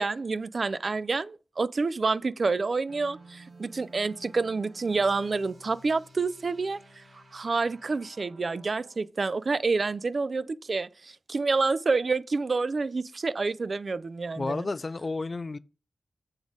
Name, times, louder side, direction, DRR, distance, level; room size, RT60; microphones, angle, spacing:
voice 1, 0.0-6.8 7.3-14.7, right 4 dB, 55° right, 0.4 m, -28 dB
sound 1, 2.9-9.1, right 2 dB, 85° right, 2.3 m, -53 dB
voice 2, 14.4-15.6, left 3 dB, 45° left, 0.3 m, -31 dB
7.1 x 3.9 x 4.8 m
wide cardioid pair, 80°, 0 cm